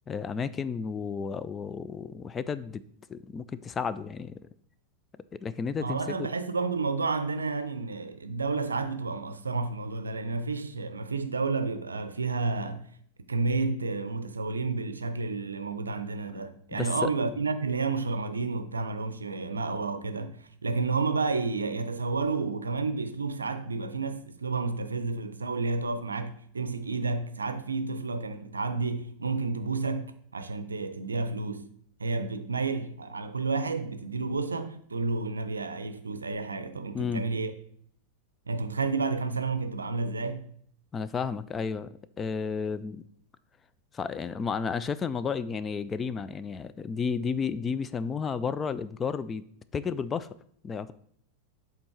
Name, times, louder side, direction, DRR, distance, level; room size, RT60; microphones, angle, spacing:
voice 1, 0.1-2.8 3.1-4.4 5.3-6.2 16.7-17.1 36.9-37.2 40.9-41.9 42.2-43.0 43.9-49.4 49.7-50.3 50.6-50.9, left 5 dB, 20° left, 0.3 m, -32 dB
voice 2, 5.8-12.8 13.3-31.7 32.0-37.5 38.5-40.4, right 3 dB, 75° right, 0.5 m, -31 dB
7.6 x 3.9 x 4.4 m
figure-of-eight pair, 90°, 0 cm